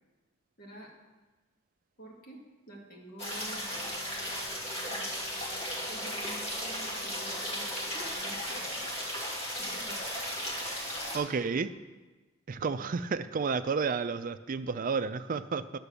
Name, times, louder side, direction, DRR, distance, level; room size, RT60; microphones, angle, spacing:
voice 1, 0.6-0.9 2.0-2.4 2.7-3.6 4.9-5.1 5.9-7.7 8.2-8.8 9.6-10.0, right 1 dB, 50° left, -1 dB, 1.9 m, -48 dB
sound 1, 3.2-11.2, equal, 30° left, 2.3 m, -35 dB
voice 2, 11.1-11.7 12.5-15.8, right 5 dB, 45° right, 12 dB, 0.4 m, -31 dB
9.9 x 6.0 x 6.8 m, 1.2 s
head